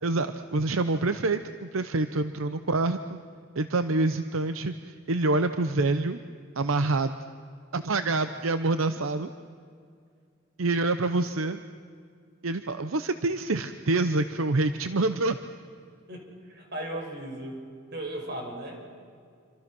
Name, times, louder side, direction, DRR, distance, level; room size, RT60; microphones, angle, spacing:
voice 1, 0.0-3.2 3.6-6.2 6.6-7.2 7.7-9.3 10.6-11.6 12.4-15.4, right 2 dB, 80° right, 10 dB, 0.8 m, -26 dB
voice 2, 16.1-17.6 17.9-18.9, right 1 dB, 55° right, 2 dB, 5.5 m, -37 dB
27.5 x 26.0 x 6.1 m, 2.2 s
head